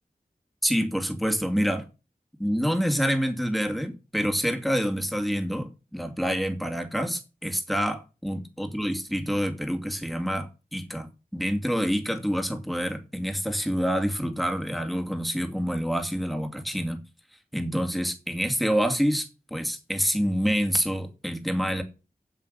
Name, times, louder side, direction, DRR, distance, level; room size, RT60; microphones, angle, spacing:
voice 1, 0.6-1.9 2.4-17.0 17.5-21.8, equal, ahead, 2.5 m, -27 dB
8.1 x 7.4 x 6.6 m
wide cardioid pair, 40°, 16 cm